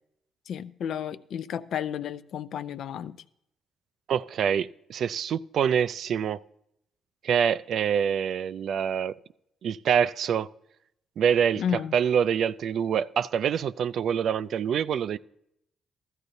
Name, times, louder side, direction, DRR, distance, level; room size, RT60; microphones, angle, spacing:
voice 1, 0.5-3.2 11.6-12.0, left 8 dB, 70° left, 0.4 m, -32 dB
voice 2, 4.1-6.4 7.2-9.2 9.6-10.5 11.2-11.6 11.9-15.2, right 8 dB, 65° right, 0.3 m, -25 dB
15.5 x 13.5 x 2.7 m
cardioid pair, 90°, 0 cm